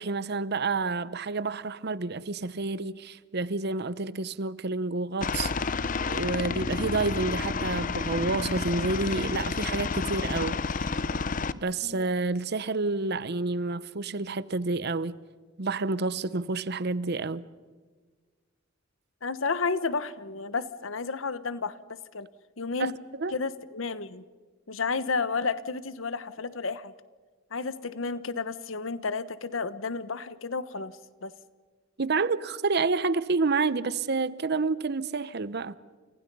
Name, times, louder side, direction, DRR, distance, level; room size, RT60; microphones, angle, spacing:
voice 1, 0.0-5.5 6.1-11.0 11.3-15.2 15.6-17.4 22.8-22.9 23.2-23.3 32.0-35.8, right 3 dB, 55° right, 0.8 m, -29 dB
Aircraft, 5.2-11.5, left 4 dB, 40° left, 0.7 m, -30 dB
voice 2, 19.2-22.3 22.6-23.0 23.3-24.2 24.7-26.9 27.5-31.3, left 4 dB, 80° left, 1.1 m, -32 dB
29.5 x 28.5 x 5.5 m
head